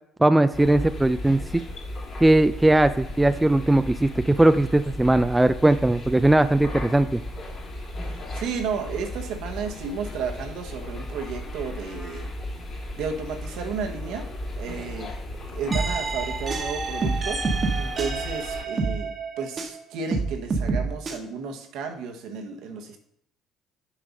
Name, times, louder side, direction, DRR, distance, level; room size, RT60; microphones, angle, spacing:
voice 1, 0.2-1.6 2.2-7.2, right 1 dB, 10° right, 11 dB, 0.4 m, -19 dB
sound 1, 0.5-18.6, left 1 dB, 45° left, 3.2 m, -36 dB
voice 2, 8.3-12.3 13.0-15.1 15.5-17.4 17.8-23.0, right 5 dB, 65° right, 4 dB, 1.3 m, -33 dB
sound 2, 15.7-19.8 20.1-21.2, right 4 dB, 40° right, 1.3 m, -27 dB
7.5 x 4.6 x 5.4 m, 0.74 s
hypercardioid pair, 55°, 0 cm